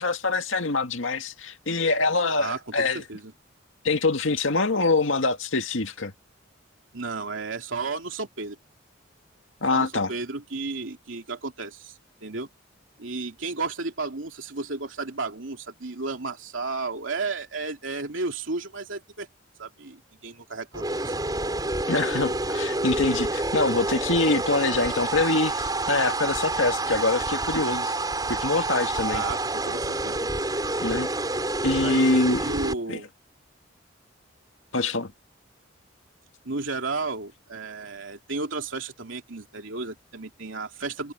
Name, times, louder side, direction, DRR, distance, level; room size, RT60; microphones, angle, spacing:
voice 1, 0.0-3.0 3.8-6.1 9.6-10.1 21.9-27.9 28.3-29.2 30.8-31.1 31.6-32.5 32.9-33.0 34.7-35.1, left 3 dB, 85° left, 1.9 m, -24 dB
voice 2, 2.4-3.3 6.9-8.6 9.7-12.5 13.0-19.3 19.6-21.1 29.1-30.3 31.8-32.1 32.4-33.1 36.4-41.1, right 3 dB, 85° right, 2.6 m, -33 dB
sound 1, 20.7-32.7, right 2 dB, 20° right, 5.6 m, -28 dB
head